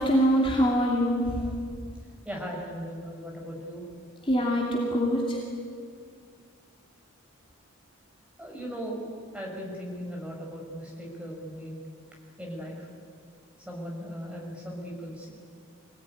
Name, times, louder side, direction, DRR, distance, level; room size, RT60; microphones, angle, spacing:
voice 1, 0.0-1.5 4.2-5.4, equal, 25° left, -2 dB, 2.7 m, -24 dB
voice 2, 2.2-3.8 8.4-9.1 9.3-11.8 12.4-12.9 13.6-15.3, equal, 5° right, -2 dB, 5.6 m, -38 dB
24.5 x 18.5 x 9.9 m, 2.1 s
head